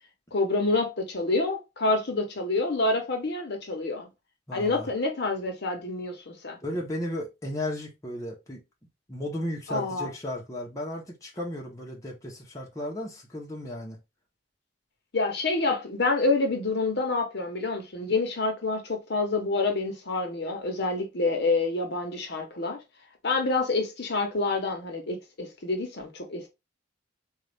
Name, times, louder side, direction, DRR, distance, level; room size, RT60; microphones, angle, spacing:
voice 1, 0.3-4.1 4.5-6.6 9.7-10.1 15.1-22.8 23.2-26.5, left 3 dB, 60° left, 0.9 m, -27 dB
voice 2, 4.5-4.9 6.6-8.6 9.1-14.0, left 1 dB, 15° left, 0.9 m, -34 dB
4.0 x 2.4 x 3.3 m
head